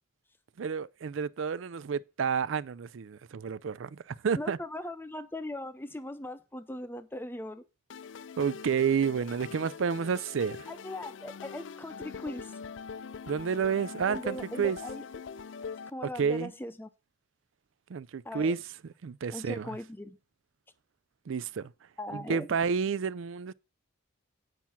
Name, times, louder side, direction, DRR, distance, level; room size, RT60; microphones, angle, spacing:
voice 1, 0.6-4.6 8.4-10.7 13.3-14.8 16.2-16.5 17.9-18.6 19.0-19.8 21.3-21.7 22.1-23.5, right 6 dB, 70° right, 0.4 m, -30 dB
voice 2, 4.4-7.6 10.7-12.6 14.1-15.0 15.6-16.9 18.2-18.5 19.3-20.2 22.0-22.5, left 1 dB, 10° left, 0.6 m, -39 dB
sound 1, 7.9-15.9, left 5 dB, 65° left, 0.4 m, -43 dB
9.2 x 5.7 x 5.8 m
head